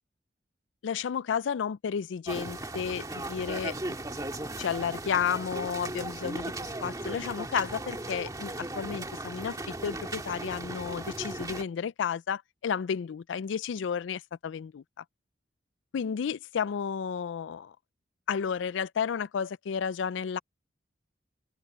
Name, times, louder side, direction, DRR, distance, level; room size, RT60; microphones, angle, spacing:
voice 1, 0.8-4.0 4.6-6.5 6.8-14.8 15.9-17.7 18.3-20.4, left 7 dB, 85° left, 0.4 m, -32 dB
sound 1, 2.3-11.6, right 2 dB, 20° right, 2.1 m, -37 dB
open air
head